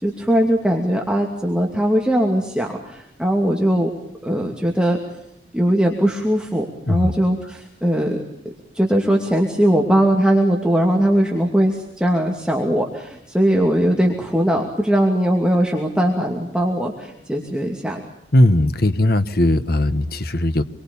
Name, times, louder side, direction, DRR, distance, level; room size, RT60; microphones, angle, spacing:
voice 1, 0.0-3.9 4.2-5.0 5.5-8.2 8.7-18.0, equal, 5° right, 0 dB, 2.5 m, -20 dB
voice 2, 18.3-20.6, left 1 dB, 55° left, 11 dB, 1.3 m, -18 dB
27.5 x 23.0 x 7.1 m, 0.78 s
head